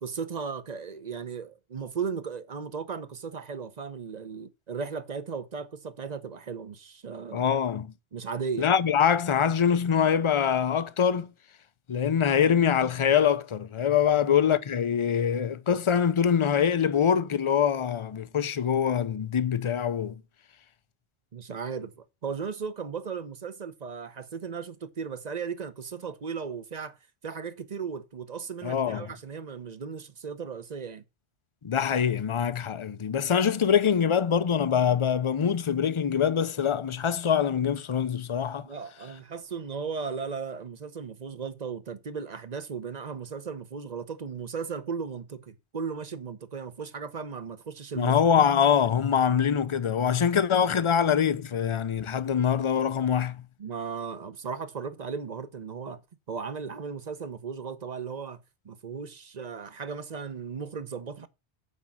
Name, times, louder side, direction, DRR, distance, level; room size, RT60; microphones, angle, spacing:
voice 1, 0.0-7.5 8.1-8.7 14.1-14.2 21.3-27.0 27.2-31.0 38.6-48.4 53.6-56.0 56.3-58.4 58.6-61.3, right 5 dB, 40° right, 0.9 m, -36 dB
voice 2, 7.3-7.9 8.6-11.3 11.9-20.2 28.6-29.1 31.6-38.7 48.0-53.4, left 8 dB, 35° left, 0.5 m, -24 dB
8.3 x 5.3 x 7.1 m
omnidirectional pair, 1.2 m